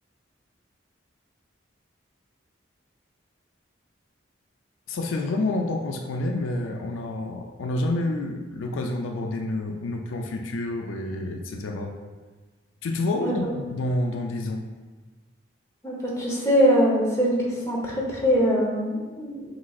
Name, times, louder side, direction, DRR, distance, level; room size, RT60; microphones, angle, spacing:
voice 1, 4.9-11.9 12.8-14.6, left 2 dB, 85° left, 3 dB, 0.4 m, -28 dB
voice 2, 15.8-19.6, equal, 15° left, -4 dB, 0.8 m, -23 dB
5.9 x 3.1 x 2.3 m, 1.3 s
head